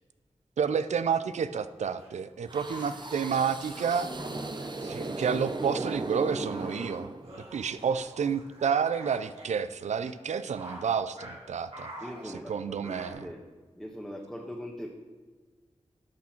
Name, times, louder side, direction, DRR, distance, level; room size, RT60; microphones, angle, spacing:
voice 1, 0.6-4.1 4.8-7.1 7.5-11.9 12.5-13.3, right 6 dB, 85° right, 13 dB, 0.4 m, -30 dB
sound 1, 1.5-5.4 5.8-9.6 10.0-10.1 10.5-10.9 11.2-11.4 11.7-13.1, right 1 dB, 60° right, 3.1 m, -47 dB
sound 2, 2.5-7.6, right 2 dB, 40° right, 0.9 m, -36 dB
voice 2, 7.6-8.0 12.0-13.4 13.7-14.9, equal, ahead, -1 dB, 1.3 m, -41 dB
11.5 x 6.2 x 4.4 m, 1.4 s
cardioid pair, 40°, 12 cm